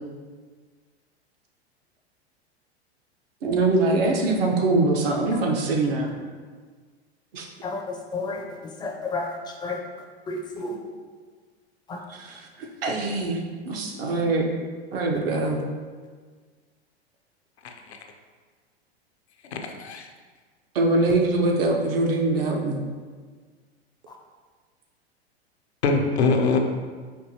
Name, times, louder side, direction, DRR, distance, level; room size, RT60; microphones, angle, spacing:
voice 1, 3.4-6.1 7.3-7.5 12.8-13.4 13.6-14.5 14.9-15.6 20.7-22.8, right 2 dB, 60° right, 0 dB, 0.8 m, -23 dB
voice 2, 7.6-9.8 10.3-10.8 11.9-12.0 24.1-24.2, left 3 dB, 15° left, 1 dB, 0.4 m, -32 dB
voice 3, 17.6-18.0 19.5-20.1 25.8-26.6, left 4 dB, 80° left, 3 dB, 0.6 m, -23 dB
4.4 x 2.7 x 2.8 m, 1.5 s
hypercardioid pair, 95°, 32 cm